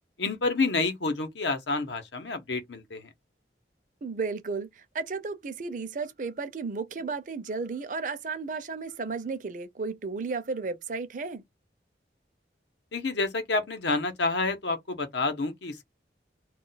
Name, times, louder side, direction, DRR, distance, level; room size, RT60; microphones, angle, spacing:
voice 1, 0.2-3.1 12.9-15.8, left 3 dB, 80° left, 0.8 m, -29 dB
voice 2, 4.0-11.4, right 4 dB, 45° right, 0.5 m, -33 dB
2.3 x 2.2 x 3.9 m
head